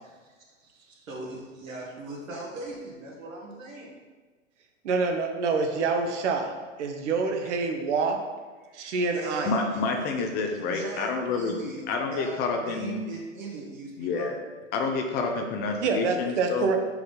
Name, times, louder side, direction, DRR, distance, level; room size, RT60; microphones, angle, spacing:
voice 1, 0.0-3.9 8.6-8.8 9.1-9.8 10.6-14.3, right 2 dB, 80° right, -2 dB, 1.8 m, -40 dB
voice 2, 4.8-6.5 6.8-8.2 8.7-9.5 15.8-16.8, right 4 dB, 60° right, 4 dB, 1.1 m, -26 dB
voice 3, 9.4-11.6 11.9-13.0 14.0-14.3 14.7-16.7, left 4 dB, 25° left, 3 dB, 0.5 m, -28 dB
4.8 x 3.9 x 5.2 m, 1.3 s
hypercardioid pair, 120°, 39 cm